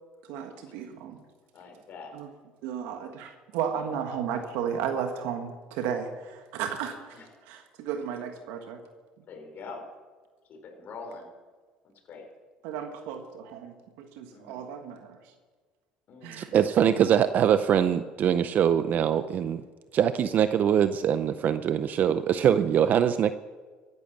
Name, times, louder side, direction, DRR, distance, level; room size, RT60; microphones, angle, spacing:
voice 1, 0.3-1.2 2.1-2.3 2.6-7.2 7.5-8.8 12.6-15.2 16.2-16.6, right 8 dB, 80° right, 5 dB, 1.6 m, -34 dB
voice 2, 1.5-2.1 3.7-4.0 7.1-7.4 9.3-9.9 10.4-11.3 11.8-12.3 14.3-14.6 16.1-16.6, left 4 dB, 50° left, 3 dB, 4.6 m, -44 dB
voice 3, 16.4-19.6 19.9-23.3, right 9 dB, 50° right, 12 dB, 0.6 m, -23 dB
15.0 x 10.5 x 6.6 m, 1.4 s
supercardioid pair, 100°, 4 cm